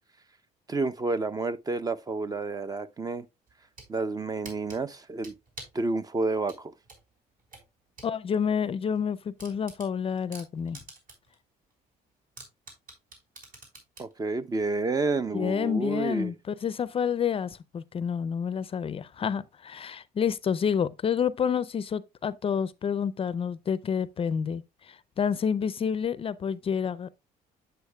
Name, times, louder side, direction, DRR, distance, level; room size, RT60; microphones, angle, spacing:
voice 1, 0.7-3.3 3.9-5.3 5.7-6.7 14.0-16.3, right 3 dB, 20° right, 0.5 m, -30 dB
sound 1, 3.5-3.9 4.4-5.8 6.5-8.1 8.5-8.6 9.0-9.1 9.4-11.3 11.7-11.8 12.4-14.1, right 3 dB, 55° right, 4.2 m, -46 dB
voice 2, 8.0-10.8 15.3-27.1, left 7 dB, 35° left, 0.4 m, -29 dB
8.1 x 7.8 x 2.2 m
cardioid pair, 110°, 17 cm